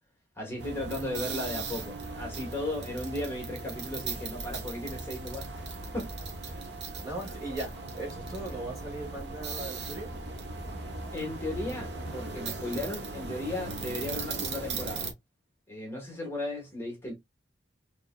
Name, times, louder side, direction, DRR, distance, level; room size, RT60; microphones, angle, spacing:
voice 1, 0.4-5.7 5.9-6.1 6.4-6.6 11.1-15.1 15.7-17.1, left 1 dB, 15° left, 1.4 m, -36 dB
sound 1, 0.6-15.1, right 3 dB, 65° right, 1.0 m, -38 dB
voice 2, 7.0-10.1, right 2 dB, 20° right, 1.7 m, -38 dB
3.8 x 2.9 x 2.2 m
head